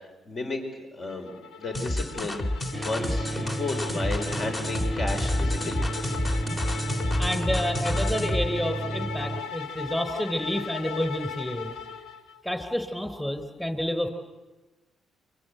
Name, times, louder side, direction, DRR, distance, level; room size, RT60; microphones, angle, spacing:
voice 1, 0.3-5.9, left 2 dB, 45° left, 4 dB, 4.6 m, -33 dB
sound 1, 1.1-12.4, left 7 dB, 85° left, 1.1 m, -38 dB
sound 2, 1.7-8.5, left 1 dB, 30° left, 2.7 m, -29 dB
sound 3, 2.7-9.4, right 2 dB, 5° right, 1.2 m, -32 dB
voice 2, 7.2-11.7 12.4-14.1, left 1 dB, 10° left, 9 dB, 3.8 m, -29 dB
28.5 x 24.0 x 8.0 m, 1.2 s
cardioid pair, 90°, 0 cm